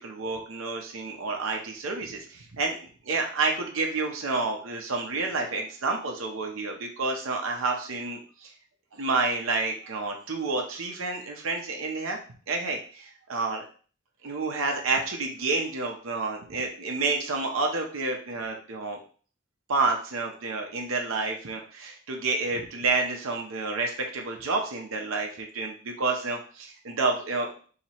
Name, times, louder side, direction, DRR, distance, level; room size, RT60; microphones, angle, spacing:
voice 1, 0.0-8.5 8.9-12.2 12.5-13.6 14.2-19.0 19.7-27.5, right 3 dB, 80° right, 1 dB, 0.7 m, -29 dB
3.0 x 2.9 x 4.3 m, 0.41 s
head